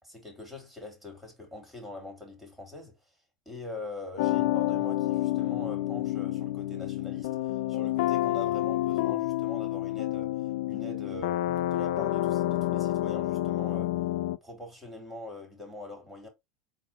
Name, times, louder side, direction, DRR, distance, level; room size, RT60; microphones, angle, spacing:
voice 1, 0.0-3.0 3.4-7.4 7.7-10.4 10.7-14.0 14.4-16.3, left 2 dB, 5° right, 2.9 m, -43 dB
sound 1, 4.2-14.4, left 15 dB, 75° left, 0.4 m, -29 dB
4.1 x 2.7 x 4.2 m
supercardioid pair, 105°, 3 cm